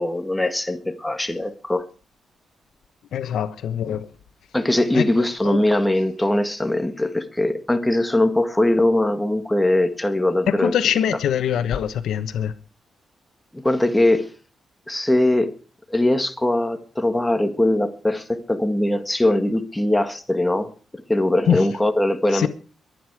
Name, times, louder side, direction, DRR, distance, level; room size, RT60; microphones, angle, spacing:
voice 1, 0.0-1.8 4.5-10.7 13.5-14.3 14.9-15.5 15.9-20.7 21.1-22.5, left 1 dB, 10° left, 1.8 m, -21 dB
voice 2, 3.1-4.1 4.9-5.7 10.5-12.5 21.4-21.8 22.3-22.5, left 9 dB, 85° left, 1.2 m, -23 dB
22.5 x 9.5 x 4.8 m
cardioid pair, 110°, 0 cm